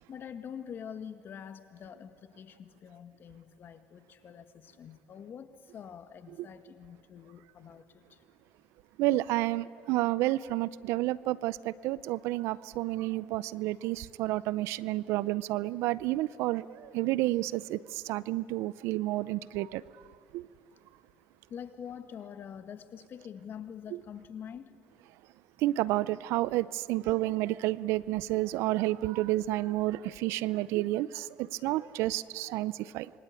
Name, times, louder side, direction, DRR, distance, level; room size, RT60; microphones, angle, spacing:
voice 1, 0.1-7.8 21.5-24.7, left 8 dB, 50° left, 1.9 m, -45 dB
voice 2, 9.0-19.8 20.3-20.5 25.6-33.1, right 17 dB, 75° right, 0.6 m, -30 dB
27.5 x 23.5 x 8.6 m
supercardioid pair, 75°, 5 cm